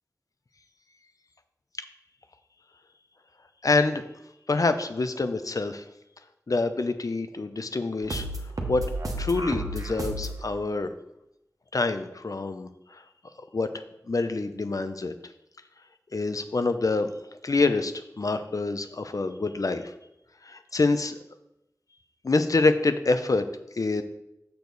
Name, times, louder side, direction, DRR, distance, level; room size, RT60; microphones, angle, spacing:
voice 1, 3.6-4.0 4.5-5.8 6.5-8.2 8.7-8.9 9.2-10.9 11.7-12.7 13.5-15.1 16.1-17.1 17.4-19.9 20.5-21.2 22.2-23.5 23.8-24.0, left 3 dB, 65° left, 9 dB, 0.7 m, -26 dB
sound 1, 8.0-10.4, right 1 dB, 65° right, 1.2 m, -32 dB
6.8 x 6.6 x 4.0 m, 0.85 s
wide cardioid pair, 45°, 6 cm